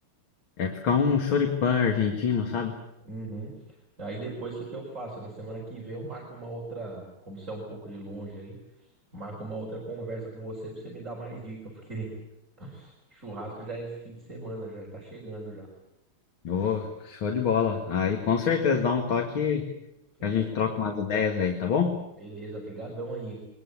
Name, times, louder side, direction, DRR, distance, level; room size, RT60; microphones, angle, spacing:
voice 1, 0.6-2.8 16.4-19.7 20.2-22.0, left 6 dB, 75° left, 3 dB, 2.7 m, -25 dB
voice 2, 3.0-3.5 4.0-12.1 12.6-15.7 20.2-20.8 22.2-23.4, right 2 dB, 35° right, -2 dB, 5.4 m, -38 dB
23.5 x 20.5 x 8.7 m, 0.87 s
omnidirectional pair, 2.2 m